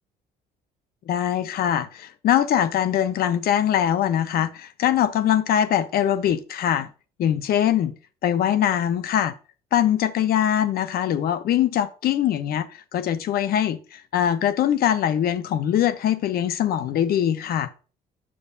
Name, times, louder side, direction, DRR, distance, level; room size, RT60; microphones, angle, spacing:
voice 1, 1.1-6.9 7.2-7.9 8.2-9.3 9.7-12.7 12.9-17.7, left 10 dB, 65° left, 0.9 m, -22 dB
8.7 x 6.8 x 2.6 m
cardioid pair, 110°, 17 cm